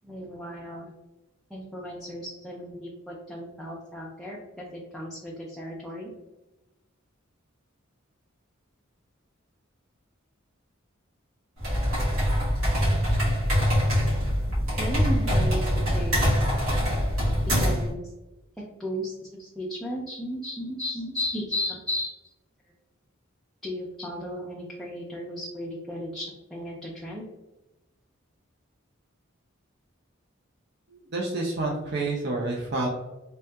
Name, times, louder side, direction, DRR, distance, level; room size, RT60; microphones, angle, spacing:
voice 1, 0.0-0.9 1.5-6.1 14.8-16.2 17.6-18.0 18.8-22.2 23.6-27.2, left 1 dB, ahead, -5 dB, 0.4 m, -35 dB
sound 1, 11.6-17.9, equal, 85° right, 1.4 m, -24 dB
voice 2, 31.1-32.9, right 2 dB, 55° right, -2 dB, 0.5 m, -28 dB
3.3 x 2.7 x 2.2 m, 1.0 s
head